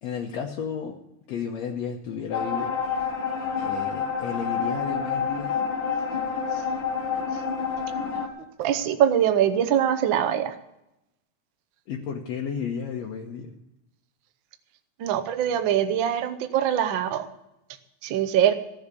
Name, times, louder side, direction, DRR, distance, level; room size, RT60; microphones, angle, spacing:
voice 1, 0.0-1.0 1.3-2.7 3.6-5.6 11.9-13.5, left 7 dB, 70° left, 0 dB, 2.1 m, -32 dB
sound 1, 2.3-8.3, left 6 dB, 50° left, 1.8 m, -28 dB
voice 2, 8.6-10.5 15.0-17.3 18.0-18.5, right 10 dB, 65° right, 9 dB, 1.2 m, -23 dB
15.5 x 7.1 x 8.3 m, 0.89 s
omnidirectional pair, 3.3 m